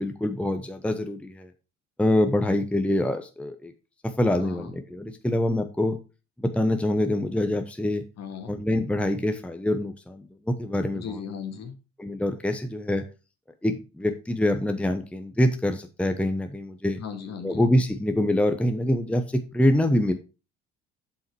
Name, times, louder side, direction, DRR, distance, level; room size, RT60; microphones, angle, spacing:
voice 1, 0.0-1.5 2.0-3.7 4.0-6.0 6.4-8.0 8.5-11.2 12.0-13.0 13.6-17.0 17.4-20.1, left 1 dB, 5° left, 6 dB, 1.0 m, -25 dB
voice 2, 4.3-4.8 8.2-8.5 10.9-11.8 16.9-17.6, left 7 dB, 45° left, 7 dB, 1.9 m, -37 dB
7.5 x 5.8 x 4.7 m, 0.31 s
hypercardioid pair, 60°, 35 cm